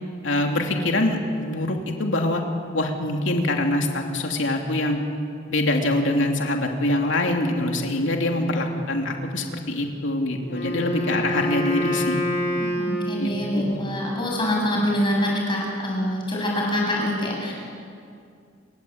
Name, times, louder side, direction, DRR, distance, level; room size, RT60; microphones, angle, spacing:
voice 1, 0.2-2.4 2.7-5.0 5.5-12.2 13.2-13.8, left 1 dB, 70° left, 2 dB, 3.1 m, -24 dB
Wind instrument woodwind instrument, 10.4-13.7, left 1 dB, 50° left, 3.8 m, -27 dB
voice 2, 12.6-17.5, left 1 dB, 25° left, -2 dB, 7.8 m, -25 dB
28.5 x 22.5 x 8.9 m, 2.4 s
head